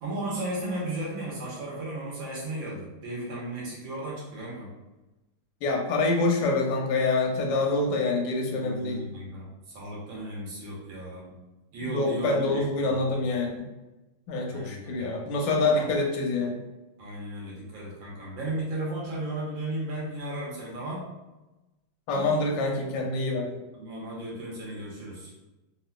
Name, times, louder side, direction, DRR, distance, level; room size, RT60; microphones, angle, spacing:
voice 1, 0.0-4.7 8.5-11.3 11.7-13.2 14.5-15.1 15.8-15.9 17.0-21.0 23.7-25.3, right 1 dB, 75° right, -5 dB, 1.7 m, -35 dB
voice 2, 5.6-9.0 11.9-13.6 14.3-16.6 22.1-23.5, left 3 dB, 75° left, 0 dB, 1.2 m, -26 dB
3.5 x 3.0 x 2.2 m, 1.0 s
omnidirectional pair, 2.1 m